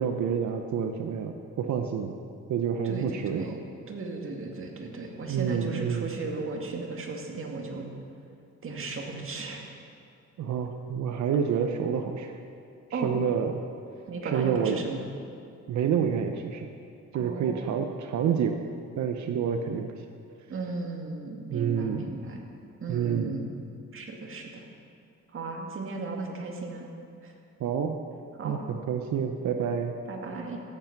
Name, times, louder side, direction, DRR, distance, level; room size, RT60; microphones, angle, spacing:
voice 1, 0.0-2.1 2.5-3.6 5.3-6.0 10.4-12.3 12.9-13.6 14.2-14.8 15.7-16.7 17.1-18.6 19.0-20.0 21.5-22.1 22.9-23.4 27.6-28.0 28.4-29.9, right 7 dB, 70° right, 6 dB, 0.8 m, -28 dB
voice 2, 2.8-3.6 3.9-7.9 8.6-9.6 12.9-13.1 14.1-15.1 17.1-17.8 20.5-22.4 22.8-23.6 23.9-24.6 25.3-26.9 27.2-27.3 28.4-28.6 30.1-30.6, right 3 dB, 45° right, 1 dB, 2.1 m, -35 dB
13.5 x 8.3 x 5.9 m, 2.5 s
cardioid pair, 90°, 30 cm